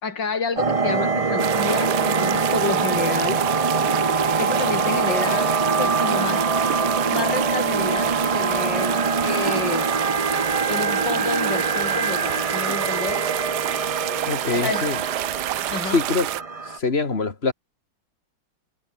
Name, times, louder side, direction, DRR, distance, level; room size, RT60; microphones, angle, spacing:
voice 1, 0.0-3.4 4.2-6.5 7.1-9.9 10.7-13.2 14.6-14.9 15.7-16.0, left 5 dB, 60° left, 3.7 m, -29 dB
sound 1, 0.6-16.8, right 4 dB, 30° right, 0.7 m, -24 dB
sound 2, 1.4-16.4, right 16 dB, 75° right, 1.0 m, -29 dB
voice 2, 14.3-15.0 15.8-16.3 16.6-17.5, left 4 dB, 30° left, 2.7 m, -24 dB
omnidirectional pair, 2.2 m